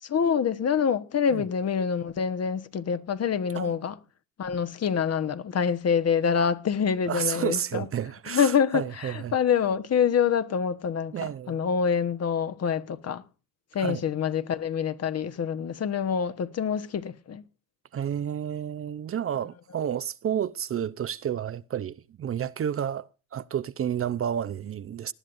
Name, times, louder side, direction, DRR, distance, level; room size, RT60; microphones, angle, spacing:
voice 1, 0.0-3.9 4.4-7.9 8.3-13.2 13.7-17.4, left 7 dB, 45° left, 1.2 m, -26 dB
voice 2, 7.1-9.3 11.1-11.6 13.8-14.0 17.9-25.1, right 9 dB, 40° right, 0.6 m, -31 dB
19.5 x 11.0 x 2.6 m
supercardioid pair, 80°, 35 cm